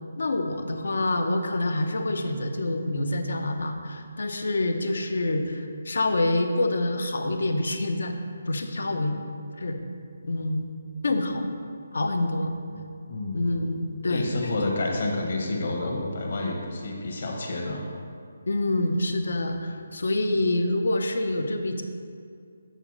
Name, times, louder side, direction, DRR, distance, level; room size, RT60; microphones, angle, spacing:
voice 1, 0.2-8.1 8.5-9.1 9.6-9.8 10.2-10.7 11.0-11.4 11.9-12.5 13.3-14.6 18.5-21.8, left 2 dB, 80° left, 6 dB, 0.7 m, -26 dB
voice 2, 13.1-13.5 14.1-17.8, left 2 dB, 50° left, 0 dB, 1.2 m, -29 dB
8.1 x 4.0 x 6.1 m, 2.3 s
hypercardioid pair, 175°, 0 cm